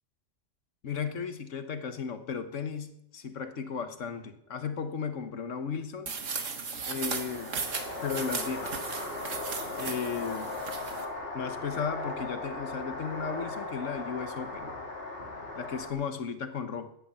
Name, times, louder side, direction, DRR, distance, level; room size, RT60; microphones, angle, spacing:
voice 1, 0.8-6.1 6.9-7.6 8.0-8.9 9.8-10.5 11.3-14.7 15.6-16.9, left 6 dB, 80° left, 9 dB, 1.5 m, -35 dB
sound 1, 6.1-11.1, right 5 dB, 85° right, 1.8 m, -37 dB
sound 2, 6.9-15.9, left 2 dB, 50° left, 3.1 m, -38 dB
14.0 x 9.7 x 7.1 m, 0.79 s
omnidirectional pair, 1.3 m